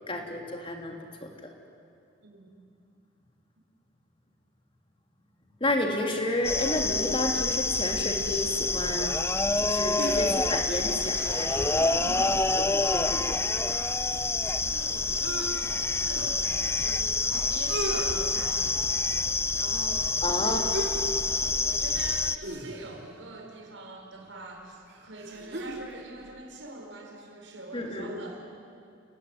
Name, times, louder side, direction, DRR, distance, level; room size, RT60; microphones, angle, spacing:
voice 1, 0.1-1.5 5.6-9.2 9.6-11.9 12.6-13.4 20.2-20.6 20.9-21.1 27.7-28.1, left 1 dB, 30° left, 2 dB, 3.4 m, -31 dB
voice 2, 2.2-2.5 14.4-18.9 19.5-20.8 21.1-28.5, right 2 dB, 85° right, 1 dB, 5.0 m, -44 dB
sound 1, 6.4-22.4, left 3 dB, 15° left, 0.7 m, -27 dB
sound 2, 10.0-10.6 11.1-12.6 12.9-13.0 13.2-15.5 16.2-16.3 17.1-17.2 17.5-18.1 18.6-18.9 20.7-21.1 21.4-21.6 22.4-23.1 24.2-24.3 24.9-25.9 26.2-26.3, right 1 dB, 60° right, 3.9 m, -37 dB
29.5 x 18.0 x 9.9 m, 2.5 s
head